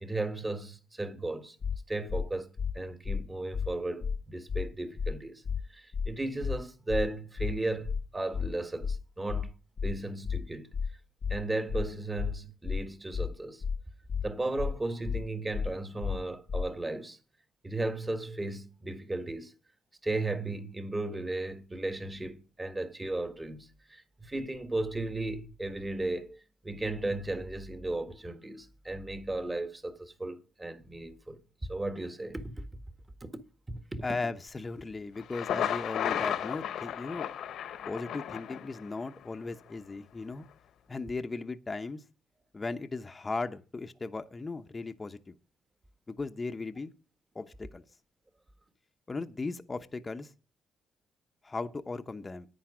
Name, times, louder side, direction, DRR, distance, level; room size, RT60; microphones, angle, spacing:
voice 1, 0.0-1.6 1.9-2.5 2.7-5.4 5.7-9.5 9.8-10.7 11.3-13.6 14.2-17.2 17.6-19.5 20.0-32.5 33.2-33.3 33.7-34.0, right 2 dB, 20° right, 1.6 m, -35 dB
sound 1, 1.6-1.8 2.1-2.2 2.6-2.7 3.0-3.2 3.5-3.7 4.0-4.2 4.5-4.6 5.0-5.1 5.4-5.6 5.9-6.1 6.4-6.6 6.9-7.0 7.4-7.5 7.8-8.0 8.3-8.5 8.8-9.0 9.3-9.4 9.8-9.9 10.2-10.4 10.7-10.9 11.2-11.4 11.7-11.8 12.2-12.3 12.6-12.8 13.1-13.3 13.6-13.8 14.1-14.2 14.6-14.7 15.0-15.2 15.5-15.7 16.0-16.2 16.5-16.6, left 6 dB, 45° left, 0.5 m, -31 dB
voice 2, 34.0-37.3 37.9-40.4 40.9-42.0 42.5-45.3 46.1-46.9 47.3-47.8 49.1-50.3 51.4-52.5, left 3 dB, 25° left, 0.9 m, -37 dB
Thunder, 35.2-39.1, left 9 dB, 75° left, 1.2 m, -34 dB
10.5 x 9.4 x 5.0 m
cardioid pair, 90°, 0 cm